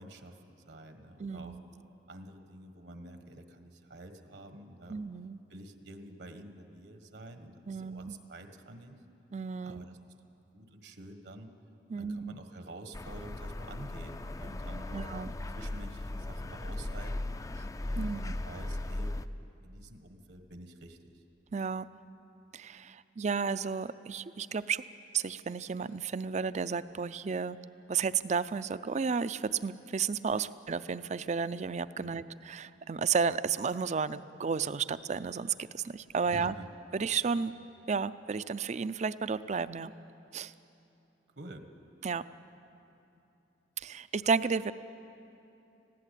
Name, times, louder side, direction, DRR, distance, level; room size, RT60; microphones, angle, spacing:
voice 1, 0.0-1.6 2.1-5.0 5.5-9.0 9.6-10.0 10.5-11.5 11.9-15.1 15.5-17.4 17.9-19.1 19.6-21.2 31.9-32.3 36.2-36.7 41.4-41.7, right 1 dB, 70° right, 7 dB, 1.4 m, -49 dB
voice 2, 1.2-1.6 4.9-5.4 7.7-8.2 9.3-9.8 11.9-12.3 14.9-15.3 18.0-18.2 21.5-21.9 22.5-24.8 25.1-27.6 27.9-36.6 36.9-37.5 37.9-39.9 40.3-40.5 42.0-42.2 43.8-44.7, right 5 dB, 40° right, 15 dB, 0.4 m, -32 dB
sound 1, 12.9-19.3, left 1 dB, 20° left, 0.4 m, -37 dB
20.5 x 15.5 x 8.4 m, 2.8 s
head